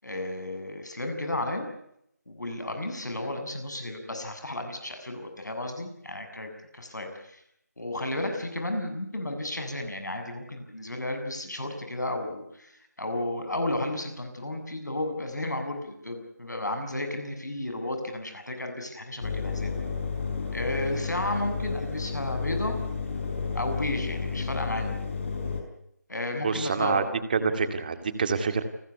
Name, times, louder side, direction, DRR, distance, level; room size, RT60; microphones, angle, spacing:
voice 1, 0.0-1.7 2.3-7.4 7.8-19.7 20.5-22.8 23.5-25.0 26.1-27.0, left 1 dB, 80° left, 6 dB, 7.2 m, -33 dB
Engine, 19.2-25.6, left 5 dB, 45° left, 5.4 m, -31 dB
voice 2, 26.4-27.0 27.3-28.6, right 5 dB, 30° right, 9 dB, 2.2 m, -26 dB
29.0 x 14.0 x 9.6 m, 0.76 s
figure-of-eight pair, 165°, 9 cm